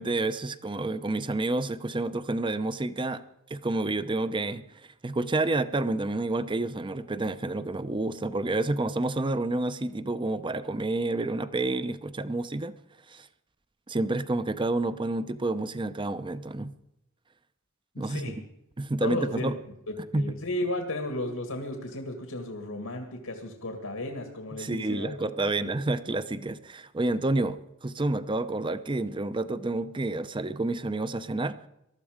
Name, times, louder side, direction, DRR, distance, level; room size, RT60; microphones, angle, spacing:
voice 1, 0.0-3.2 3.5-4.6 5.0-12.7 13.1-13.3 13.9-16.7 18.0-18.2 18.8-19.6 20.1-20.3 24.6-31.7, right 2 dB, 25° right, 13 dB, 0.7 m, -29 dB
voice 2, 17.9-18.4 19.0-19.5 19.9-25.7, left 1 dB, 85° left, 4 dB, 2.0 m, -34 dB
19.5 x 13.0 x 5.1 m, 0.84 s
head